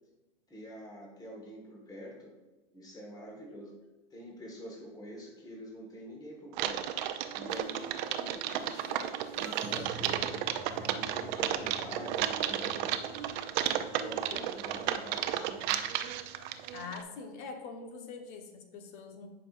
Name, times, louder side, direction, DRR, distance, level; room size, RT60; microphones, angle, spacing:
voice 1, 0.5-2.3 2.7-3.7 4.1-6.8 7.3-10.3 10.8-13.2 13.6-15.9, equal, 10° left, -1 dB, 1.5 m, -45 dB
Typing, 6.5-17.0, right 11 dB, 50° right, 0.5 m, -33 dB
sound 1, 7.5-16.9, right 3 dB, 30° right, 1.9 m, -50 dB
voice 2, 16.7-19.3, left 4 dB, 55° left, 4 dB, 1.2 m, -43 dB
10.5 x 5.0 x 2.5 m, 1.1 s
hypercardioid pair, 125°, 30 cm